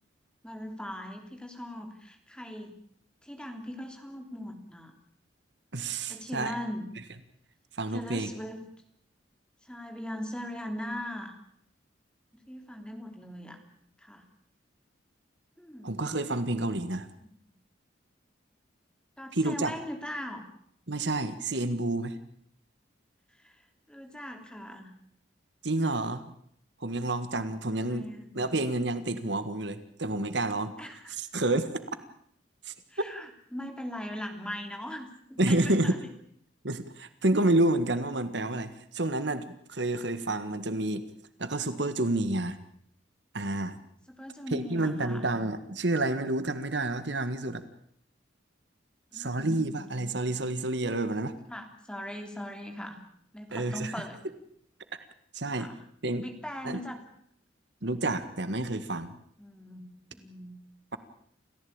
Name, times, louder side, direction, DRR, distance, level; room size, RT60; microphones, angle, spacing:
voice 1, 0.4-2.8 3.2-4.9 6.1-6.9 7.9-8.6 9.6-11.3 12.5-13.6 14.0-14.2 15.6-16.0 19.2-20.4 23.4-23.6 23.9-24.9 27.8-28.3 30.8-31.2 32.9-35.9 44.1-45.3 49.1-50.1 51.5-53.0 53.3-54.2 55.6-55.8 56.2-57.0 59.4-59.8 60.1-60.6, left 1 dB, 5° left, 4 dB, 3.3 m, -40 dB
voice 2, 5.7-6.6 7.7-8.3 15.8-17.1 19.3-19.7 20.9-22.2 25.6-26.3 26.8-28.1 28.4-30.7 31.1-31.7 32.6-32.7 35.4-36.0 36.6-41.0 41.4-42.6 43.3-43.8 44.5-47.6 49.1-51.3 53.5-53.9 55.3-55.7 56.0-56.3 56.6-56.8 57.8-59.2, right 2 dB, 65° right, 11 dB, 1.7 m, -29 dB
29.0 x 15.0 x 8.8 m, 0.67 s
head